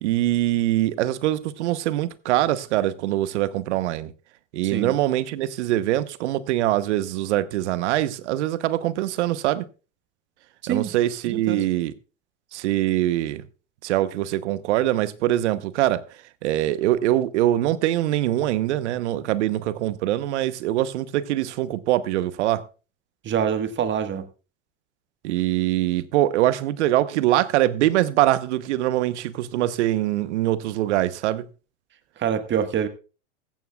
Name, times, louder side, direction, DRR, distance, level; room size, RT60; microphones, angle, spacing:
voice 1, 0.0-4.1 4.5-9.7 10.7-11.9 12.5-13.4 13.8-16.0 16.4-22.6 25.2-31.4, right 14 dB, 70° right, 0.9 m, -23 dB
voice 2, 11.2-11.6 23.2-24.2 32.2-32.9, right 8 dB, 30° right, 1.5 m, -25 dB
15.0 x 14.5 x 2.3 m
hypercardioid pair, 100°, 36 cm